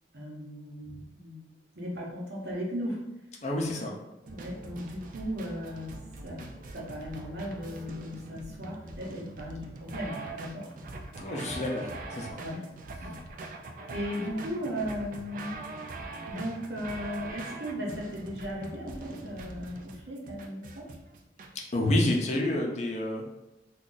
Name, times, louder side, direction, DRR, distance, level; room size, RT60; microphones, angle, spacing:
voice 1, 0.1-1.4 1.8-3.0 3.5-4.0 4.3-6.0 6.2-6.4 6.7-10.7 12.4-12.6 13.0-13.2 13.9-15.5 16.3-20.9, equal, 80° right, -3 dB, 0.9 m, -37 dB
voice 2, 3.4-3.9 11.1-12.3 21.7-23.3, left 1 dB, 40° left, -1 dB, 0.5 m, -28 dB
sound 1, 4.3-21.5, right 2 dB, 50° right, 0.3 m, -42 dB
2.5 x 2.3 x 3.8 m, 0.99 s
head